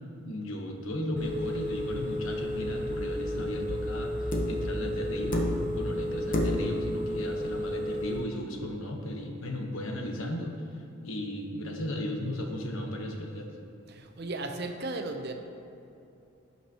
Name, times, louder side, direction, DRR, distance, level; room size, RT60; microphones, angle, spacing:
voice 1, 0.2-10.6 11.0-13.5, left 1 dB, 80° left, 1 dB, 1.2 m, -35 dB
Telephone, 1.2-8.2, equal, 10° left, 0.8 m, -33 dB
sound 1, 3.3-3.6 4.3-4.7 5.3-5.8 6.3-6.8 8.2-8.3, left 1 dB, 40° left, 1.0 m, -30 dB
voice 2, 13.9-15.3, right 2 dB, 50° right, 4 dB, 0.7 m, -35 dB
16.5 x 5.8 x 3.0 m, 2.7 s
head